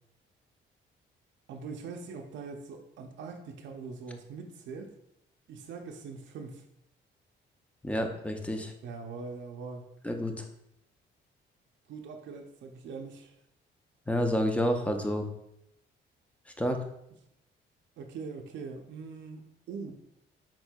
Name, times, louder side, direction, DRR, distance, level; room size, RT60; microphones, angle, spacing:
voice 1, 1.5-4.9 5.5-6.6 8.8-9.9 11.9-13.3 18.0-19.9, right 4 dB, 70° right, 4 dB, 0.5 m, -42 dB
voice 2, 7.8-8.7 10.0-10.4 14.1-15.3 16.6-16.8, left 1 dB, 5° left, 4 dB, 0.5 m, -29 dB
4.4 x 4.3 x 2.2 m, 0.80 s
cardioid pair, 90°, 20 cm